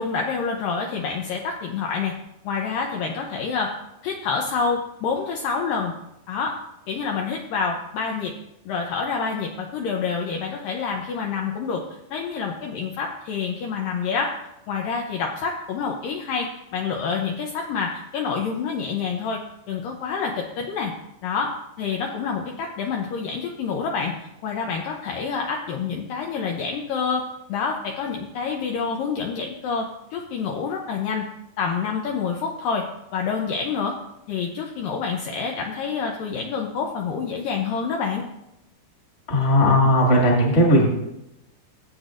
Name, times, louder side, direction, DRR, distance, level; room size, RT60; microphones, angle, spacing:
voice 1, 0.0-2.1 2.4-3.7 4.0-5.9 6.3-6.5 6.9-8.3 8.7-11.8 12.1-14.3 14.7-19.4 19.7-20.9 21.2-21.5 21.8-24.1 24.4-29.9 30.1-31.2 31.6-32.8 33.1-34.0 34.3-38.2, left 5 dB, 85° left, 1 dB, 1.9 m, -27 dB
voice 2, 39.3-40.9, left 1 dB, 30° left, -2 dB, 1.4 m, -17 dB
17.0 x 8.1 x 2.5 m, 0.88 s
omnidirectional pair, 5.0 m